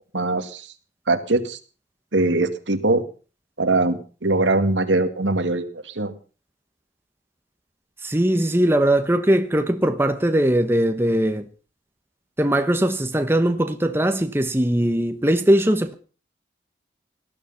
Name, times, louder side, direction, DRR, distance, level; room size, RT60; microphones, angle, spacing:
voice 1, 0.1-0.7 1.1-1.6 2.1-3.0 3.6-6.1, right 2 dB, 90° right, 2.2 m, -22 dB
voice 2, 8.0-11.5 12.4-15.9, right 1 dB, 15° right, 1.1 m, -20 dB
18.5 x 12.5 x 5.7 m
head